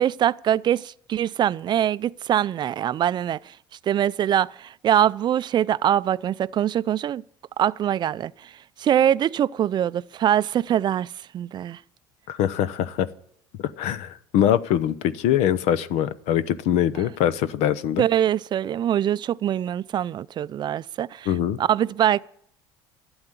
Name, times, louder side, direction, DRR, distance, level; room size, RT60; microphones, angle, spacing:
voice 1, 0.0-3.6 3.8-7.2 7.6-8.5 8.8-11.8 18.0-21.3 21.6-22.2, right 10 dB, 40° right, 0.4 m, -23 dB
voice 2, 12.3-13.1 13.8-18.0 21.3-21.6, left 10 dB, 70° left, 0.7 m, -23 dB
11.5 x 7.9 x 9.1 m
supercardioid pair, 85°, 12 cm